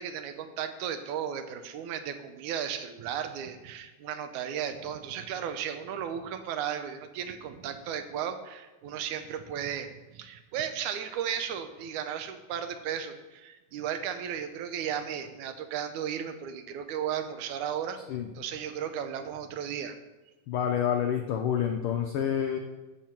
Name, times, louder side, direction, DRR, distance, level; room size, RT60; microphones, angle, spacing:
voice 1, 0.0-18.0 18.4-20.0, right 8 dB, 90° right, 8 dB, 2.3 m, -35 dB
voice 2, 20.5-22.6, left 9 dB, 80° left, 4 dB, 1.2 m, -28 dB
13.0 x 4.6 x 5.9 m, 1.1 s
omnidirectional pair, 3.3 m